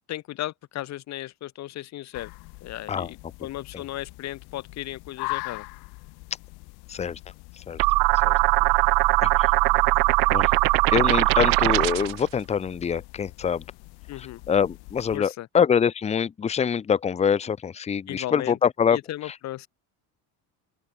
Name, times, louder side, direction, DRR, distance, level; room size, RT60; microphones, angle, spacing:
voice 1, 0.1-2.3 2.6-5.7 14.1-14.4 15.1-15.5 18.1-18.6 18.9-19.7, left 14 dB, 45° left, 2.7 m, -35 dB
sound 1, 2.1-15.2, left 26 dB, 70° left, 2.4 m, -42 dB
sound 2, 7.8-12.2, right 26 dB, 60° right, 0.6 m, -20 dB
voice 2, 9.2-9.5 10.3-10.5 10.9-13.6 14.2-19.0, left 7 dB, 15° left, 1.0 m, -24 dB
open air
cardioid pair, 175°, 39 cm